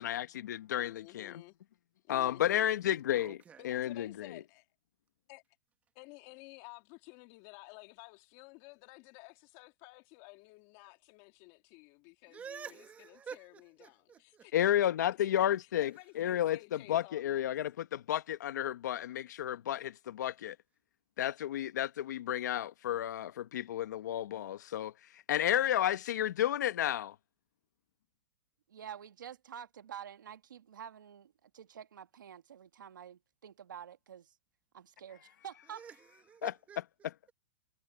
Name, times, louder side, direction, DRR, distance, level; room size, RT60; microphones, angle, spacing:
voice 1, 0.0-1.4 2.1-3.4 3.6-4.3 14.5-20.5 21.2-24.9 25.3-27.1 36.4-36.5, left 11 dB, 65° left, 1.4 m, -32 dB
voice 2, 0.7-1.6 2.0-2.8 3.1-3.2 3.6-4.7 5.3-5.4 5.9-14.6 14.8-14.9 15.6-17.6, left 25 dB, 35° left, 2.9 m, -54 dB
voice 3, 3.1-3.6 12.3-14.4 35.7-37.3, right 7 dB, 15° right, 1.3 m, -49 dB
voice 4, 28.7-34.3 34.7-35.8, right 8 dB, 85° right, 1.9 m, -48 dB
hypercardioid pair, 155°, 10 cm